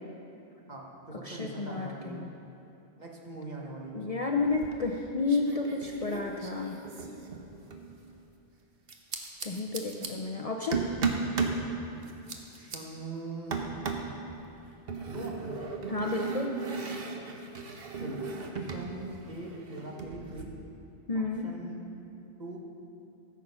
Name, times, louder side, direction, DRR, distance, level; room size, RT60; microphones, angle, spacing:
voice 1, 0.7-2.2 3.0-4.1 12.5-13.6 15.1-15.6 18.0-20.6 21.1-21.8 22.4-22.6, right 2 dB, 40° right, -1 dB, 1.4 m, -41 dB
voice 2, 1.2-2.3 3.9-6.8 9.4-10.8 15.9-16.6 21.1-21.5, left 3 dB, 40° left, 1 dB, 0.6 m, -31 dB
sound 1, 4.5-5.0 5.3-7.9 8.9-10.1 10.7-11.6 12.0-12.8 13.5-14.1 14.9-18.9 19.1-20.4, right 4 dB, 60° right, 1.2 m, -35 dB
13.5 x 7.4 x 5.5 m, 2.9 s
omnidirectional pair, 1.1 m